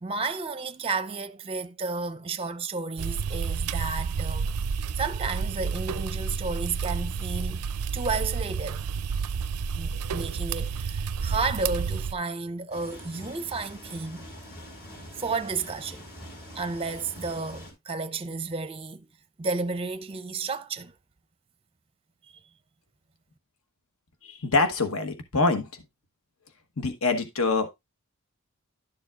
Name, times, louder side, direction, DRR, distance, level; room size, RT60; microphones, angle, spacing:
voice 1, 0.0-4.5 5.0-7.7 7.9-8.8 9.8-14.2 15.2-16.0 16.5-19.1 19.4-20.9, right 4 dB, 25° right, 0.5 m, -32 dB
sound 1, 3.0-12.2, right 5 dB, 85° right, 0.4 m, -30 dB
sound 2, 12.7-17.7, equal, 45° left, 4.7 m, -44 dB
voice 2, 24.2-25.7 26.8-27.7, left 3 dB, 65° left, 1.1 m, -25 dB
11.5 x 7.0 x 2.4 m
head